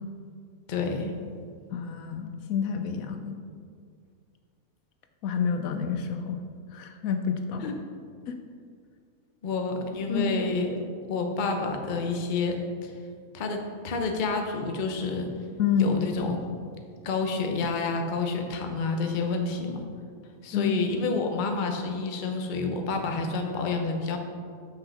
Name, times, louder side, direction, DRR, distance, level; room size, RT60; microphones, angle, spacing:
voice 1, 0.7-1.1 7.6-7.7 9.4-12.9 13.3-15.3 15.8-16.4 17.0-19.8 20.4-24.2, left 4 dB, 45° left, 4 dB, 0.7 m, -29 dB
voice 2, 1.7-3.4 5.2-6.4 6.7-7.7 8.3-8.4 10.1-10.3 15.6-16.0 20.5-20.7, left 7 dB, 75° left, 7 dB, 1.0 m, -28 dB
5.8 x 5.5 x 5.8 m, 2.2 s
omnidirectional pair, 1.5 m